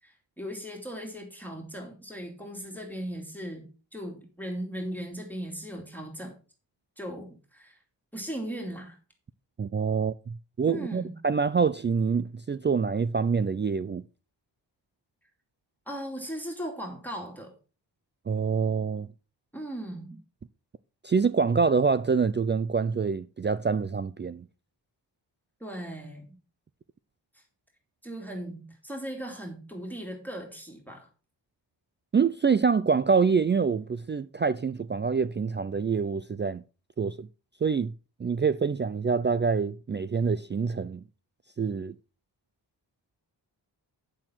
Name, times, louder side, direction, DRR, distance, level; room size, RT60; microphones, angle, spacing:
voice 1, 0.0-6.4 7.0-7.8 8.1-9.0 10.7-11.1 15.9-17.5 19.5-20.2 25.6-26.3 27.3-27.4 28.0-31.1, equal, 5° left, 2.6 m, -38 dB
voice 2, 9.6-14.0 18.3-19.1 21.0-24.4 32.1-36.6 37.0-37.3 37.6-37.9 38.2-41.0 41.6-42.0, right 5 dB, 25° right, 0.4 m, -26 dB
8.8 x 7.4 x 4.4 m
cardioid pair, 65°, 45 cm